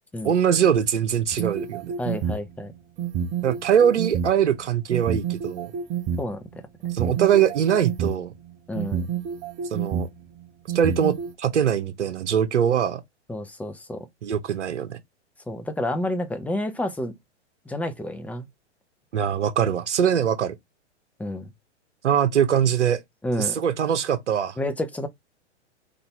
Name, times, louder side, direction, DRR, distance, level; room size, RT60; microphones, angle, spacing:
voice 1, 0.2-1.9 3.4-5.7 6.9-8.3 9.7-10.1 10.7-13.0 14.2-15.0 19.1-20.5 22.0-23.0 23.4-24.6, right 8 dB, 75° right, 0.9 m, -22 dB
sound 1, 1.3-2.5 3.0-4.3 4.9-6.2 6.8-8.2 8.8-10.1 10.7-11.3, right 8 dB, 30° right, 0.9 m, -28 dB
voice 2, 2.0-2.7 6.2-6.4 8.7-9.1 13.3-14.1 15.5-17.1 17.7-18.5 21.2-21.5 23.2-23.6 24.6-25.1, left 1 dB, 5° left, 0.6 m, -29 dB
4.0 x 2.7 x 4.4 m
hypercardioid pair, 115°, 35 cm